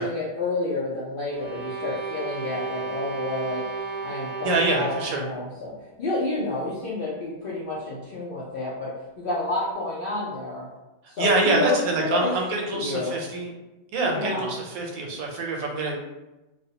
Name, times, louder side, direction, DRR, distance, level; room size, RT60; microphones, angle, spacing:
voice 1, 0.0-3.6 4.0-10.7 11.1-12.3 12.7-13.2 14.0-14.5, left 2 dB, 70° left, -6 dB, 0.5 m, -29 dB
sound 1, 1.3-5.4, right 4 dB, 45° right, 0.6 m, -33 dB
voice 2, 4.4-5.2 11.2-13.5 13.9-16.0, right 2 dB, 85° right, 1 dB, 1.0 m, -25 dB
2.3 x 2.1 x 2.8 m, 1.0 s
omnidirectional pair, 1.4 m